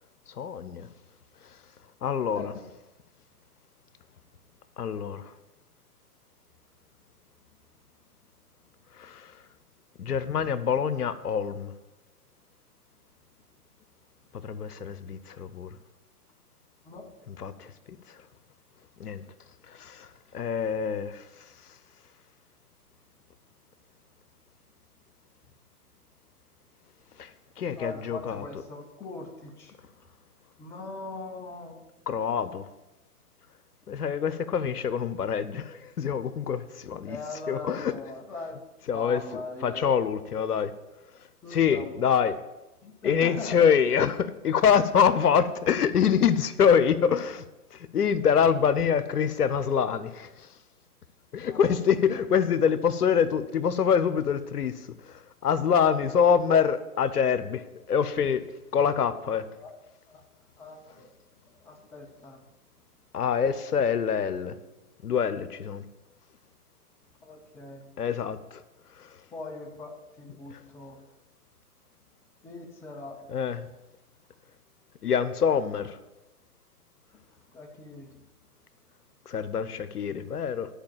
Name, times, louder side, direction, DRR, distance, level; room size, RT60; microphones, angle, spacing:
voice 1, 0.4-0.9 2.0-2.5 4.8-5.3 9.0-9.3 10.0-11.7 14.3-15.8 17.3-17.7 19.0-19.2 19.7-20.1 20.3-21.2 27.2-27.3 27.6-28.4 32.1-32.7 33.9-37.2 37.5-37.9 38.9-40.7 41.5-42.4 43.0-47.4 47.7-50.5 51.3-57.6 57.9-58.4 58.7-59.4 63.1-64.6 65.0-65.8 68.0-68.6 69.0-69.1 73.3-73.7 75.0-76.0 79.3-80.7, left 7 dB, 90° left, 13 dB, 0.8 m, -25 dB
voice 2, 27.7-29.9 30.6-31.8 37.1-38.6 38.9-39.9 41.4-42.0 42.8-43.7 48.6-48.8 51.4-51.8 52.1-52.2 59.6-59.7 60.1-60.2 60.6-61.1 61.4-62.4 67.2-67.8 69.3-71.0 72.4-73.2 77.5-78.3, left 3 dB, 5° left, 1 dB, 0.5 m, -41 dB
10.5 x 4.9 x 7.3 m, 1.0 s
hypercardioid pair, 130°, 44 cm